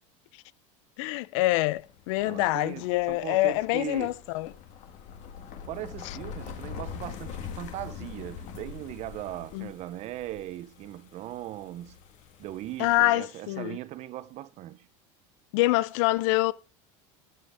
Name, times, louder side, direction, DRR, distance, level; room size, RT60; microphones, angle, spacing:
voice 1, 1.0-4.5 9.5-9.7 12.8-13.8 15.5-16.5, left 19 dB, 70° left, 0.5 m, -25 dB
sound 1, 1.8-13.0, left 8 dB, 50° left, 1.7 m, -44 dB
voice 2, 2.2-4.2 5.7-12.0 12.4-14.9, right 14 dB, 45° right, 0.7 m, -39 dB
12.5 x 7.6 x 3.5 m
supercardioid pair, 130°, 16 cm